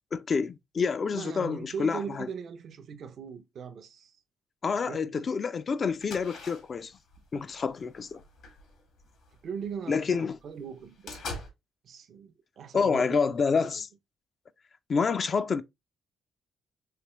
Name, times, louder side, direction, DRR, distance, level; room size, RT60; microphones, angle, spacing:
voice 1, 0.1-2.3 4.6-7.0 7.3-8.2 9.9-10.4 12.7-13.9 14.9-15.6, left 5 dB, 45° left, 0.3 m, -28 dB
voice 2, 1.1-4.2 4.8-5.3 9.4-11.2 11.8-13.3 13.6-13.7, right 6 dB, 60° right, 0.5 m, -40 dB
sound 1, 6.0-9.8 10.2-10.3 10.6-11.5, left 3 dB, 75° left, 1.6 m, -43 dB
3.3 x 2.9 x 2.9 m
cardioid pair, 90°, 0 cm